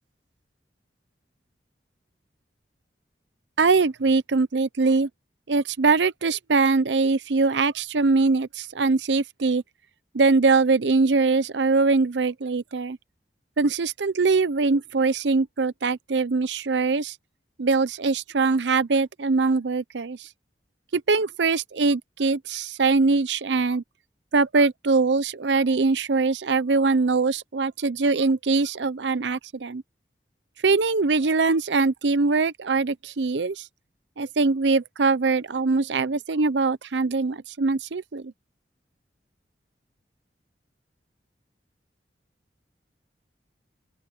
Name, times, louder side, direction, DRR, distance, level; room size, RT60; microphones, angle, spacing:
voice 1, 3.6-5.1 5.5-9.6 10.1-13.0 13.6-17.1 17.6-20.3 20.9-23.8 24.3-29.8 30.6-33.7 34.2-38.3, right 4 dB, 85° right, 0.7 m, -22 dB
open air
head